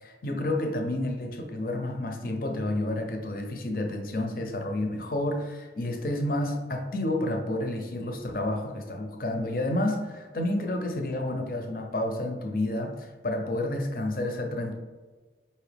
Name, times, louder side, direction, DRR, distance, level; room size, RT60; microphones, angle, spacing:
voice 1, 0.0-14.7, left 1 dB, 50° left, 4 dB, 0.5 m, -30 dB
4.8 x 2.7 x 3.3 m, 1.3 s
head